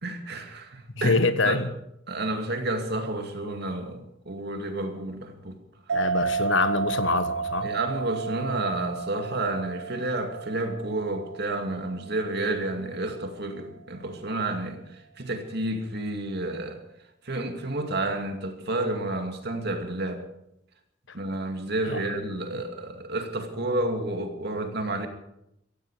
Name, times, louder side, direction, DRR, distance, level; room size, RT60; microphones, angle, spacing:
voice 1, 0.0-1.2 1.4-1.6 2.1-5.6 7.6-16.8 17.2-20.2 21.1-25.1, right 2 dB, 60° right, 2.5 m, -30 dB
voice 2, 1.0-1.7 5.9-7.7 21.9-22.0, left 3 dB, 90° left, 1.2 m, -25 dB
sound 1, 5.9-12.9, right 6 dB, 85° right, 0.6 m, -32 dB
16.5 x 16.0 x 4.9 m
head